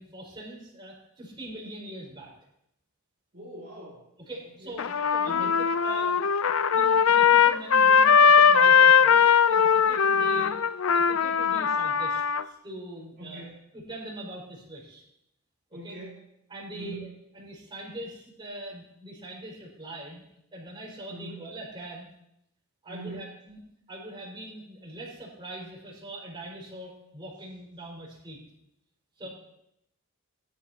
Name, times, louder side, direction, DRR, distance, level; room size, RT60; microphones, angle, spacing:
voice 1, 0.0-2.3 4.3-6.3 6.7-10.6 10.9-13.4 13.7-15.0 15.7-16.0 16.5-17.1 17.3-20.2 20.5-22.1 22.8-23.6 23.9-28.4 29.2-29.3, right 1 dB, 20° right, -5 dB, 5.2 m, -42 dB
voice 2, 3.3-4.1 4.6-4.8 5.2-5.6 10.1-10.6 13.2-13.6 15.7-16.2 16.7-17.1 21.1-21.5 22.9-23.3 29.2-29.3, right 2 dB, 50° right, -7 dB, 3.3 m, -42 dB
Trumpet, 4.8-12.4, left 7 dB, 65° left, 0.5 m, -20 dB
22.5 x 11.5 x 2.9 m, 0.78 s
head